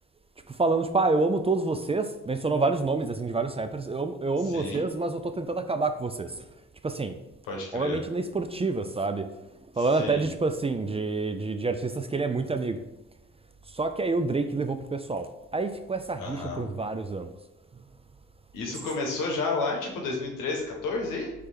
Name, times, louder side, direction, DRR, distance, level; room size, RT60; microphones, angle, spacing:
voice 1, 0.5-6.4 6.8-7.2 7.7-9.3 9.8-12.8 13.7-15.3 15.5-17.3, right 3 dB, 20° right, 9 dB, 0.3 m, -27 dB
voice 2, 4.4-4.9 7.5-8.0 9.8-10.2 16.2-16.7 18.5-21.3, left 3 dB, 85° left, 1 dB, 0.9 m, -31 dB
4.2 x 3.3 x 3.3 m, 0.98 s
supercardioid pair, 45°, 31 cm